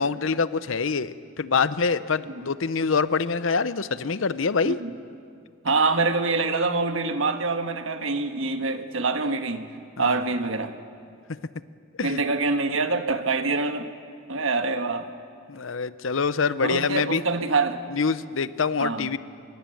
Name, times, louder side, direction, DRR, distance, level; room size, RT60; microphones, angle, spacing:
voice 1, 0.0-4.8 10.0-10.2 12.0-12.2 15.5-17.2 17.9-19.2, left 5 dB, 70° left, 0.7 m, -25 dB
voice 2, 5.6-9.7 10.0-10.7 12.0-13.9 14.3-15.1 16.6-17.8 18.8-19.1, right 3 dB, 70° right, 1.5 m, -25 dB
25.5 x 23.0 x 7.8 m
head